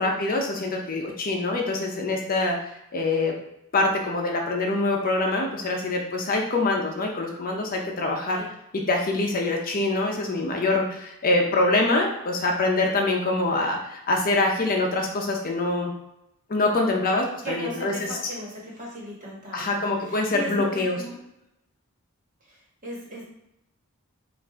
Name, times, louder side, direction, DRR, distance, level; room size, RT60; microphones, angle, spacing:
voice 1, 0.0-2.6 2.9-3.3 3.7-8.4 8.7-15.9 16.5-17.9 19.5-21.0, left 2 dB, 40° left, 1 dB, 0.6 m, -24 dB
voice 2, 17.4-21.2 22.5-23.2, equal, 40° right, -4 dB, 1.5 m, -37 dB
5.2 x 2.5 x 3.5 m, 0.82 s
head